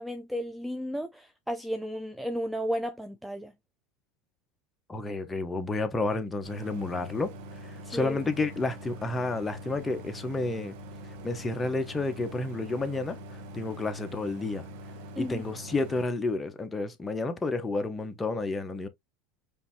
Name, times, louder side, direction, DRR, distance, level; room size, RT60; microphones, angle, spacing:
voice 1, 0.0-3.5 7.8-8.2 15.2-15.4, equal, 5° right, 0.4 m, -33 dB
voice 2, 4.9-7.3 7.9-10.7 11.2-13.2 13.5-14.7 15.2-18.9, left 3 dB, 15° left, 0.8 m, -30 dB
Idling, 6.4-16.0, equal, 70° right, 1.1 m, -44 dB
5.3 x 2.6 x 2.8 m
supercardioid pair, 120°, 0 cm